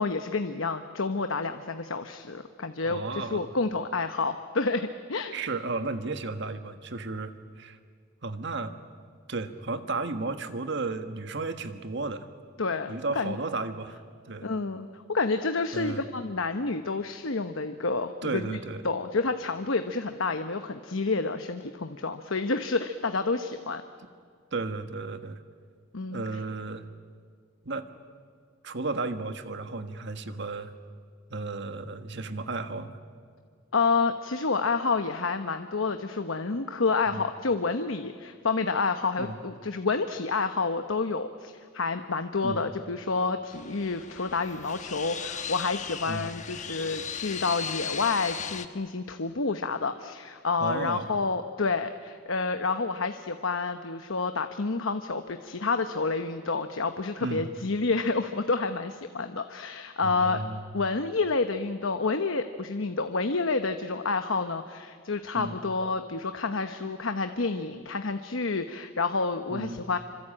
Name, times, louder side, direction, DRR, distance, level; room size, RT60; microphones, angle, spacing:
voice 1, 0.0-5.4 12.6-13.3 14.4-18.6 18.8-23.8 25.9-26.2 33.7-60.4 60.7-70.0, left 4 dB, 70° left, 8 dB, 1.0 m, -29 dB
voice 2, 2.8-3.5 5.3-7.8 8.2-8.8 9.3-12.3 12.9-14.0 14.2-14.5 15.7-16.0 18.2-18.8 24.5-25.4 26.1-26.8 27.6-27.9 28.6-30.7 31.3-33.0 37.1-37.2 39.2-39.4 42.4-42.6 46.1-46.3 50.6-51.1 57.2-57.5 60.0-60.7 65.3-65.6 69.5-69.8, right 3 dB, 60° right, 9 dB, 1.6 m, -33 dB
sound 1, 43.5-48.7, left 7 dB, 35° left, 1.2 m, -37 dB
26.5 x 25.0 x 8.8 m, 2.1 s
head